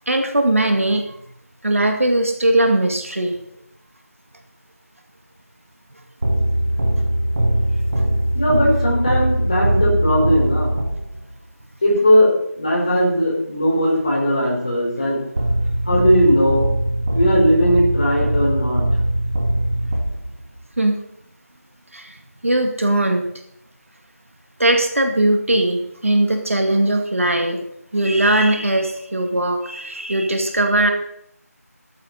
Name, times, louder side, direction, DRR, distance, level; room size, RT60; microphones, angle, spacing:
voice 1, 0.1-1.2 1.6-3.4 20.8-20.9 21.9-22.2 22.4-23.3 24.6-27.6 27.9-30.9, right 1 dB, 55° right, 4 dB, 2.2 m, -19 dB
sound 1, 6.2-11.3 15.4-20.6, right 1 dB, 35° right, 2.2 m, -21 dB
voice 2, 8.3-10.7 11.8-12.3 12.6-15.2 15.8-16.7 17.1-18.8, equal, 25° left, -4 dB, 4.8 m, -18 dB
13.5 x 13.0 x 4.2 m, 0.73 s
figure-of-eight pair, 175°, 9 cm